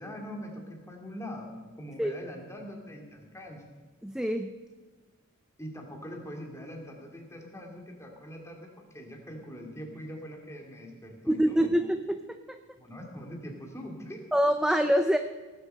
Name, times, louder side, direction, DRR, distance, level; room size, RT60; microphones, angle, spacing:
voice 1, 0.0-1.5 1.8-3.6 5.6-11.7 12.8-14.2, equal, 15° left, 1 dB, 2.3 m, -42 dB
voice 2, 4.0-4.5 11.3-12.2 12.5-12.6 14.3-15.2, equal, 5° right, 7 dB, 0.4 m, -25 dB
18.0 x 7.9 x 6.6 m, 1.3 s
head